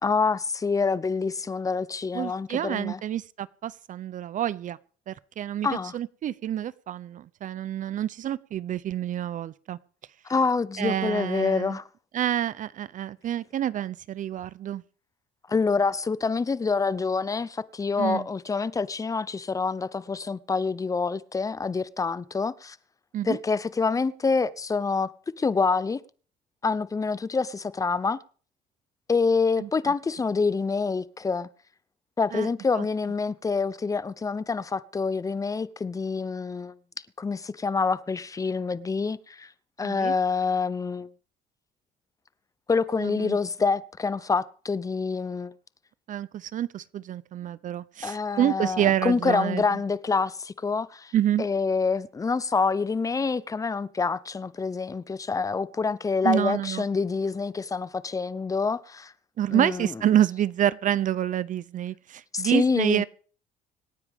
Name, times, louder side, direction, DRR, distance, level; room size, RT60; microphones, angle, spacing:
voice 1, 0.0-3.0 5.6-6.0 10.3-11.8 15.5-22.8 23.2-25.1 25.4-26.0 26.6-28.2 29.1-31.5 32.2-36.7 37.2-39.5 39.8-41.1 42.7-45.5 48.0-51.1 51.4-59.1 59.5-59.9 62.3-63.0, left 4 dB, 20° left, 0.7 m, -26 dB
voice 2, 2.1-4.8 5.1-5.7 5.9-9.8 10.8-11.8 12.1-14.8 18.0-18.3 23.1-23.4 29.6-29.7 32.3-32.5 32.8-32.9 39.8-40.1 43.0-43.4 46.1-49.6 51.1-51.5 56.2-56.8 59.4-63.0, right 11 dB, 50° right, 0.6 m, -28 dB
26.0 x 9.9 x 3.6 m
cardioid pair, 110°, 17 cm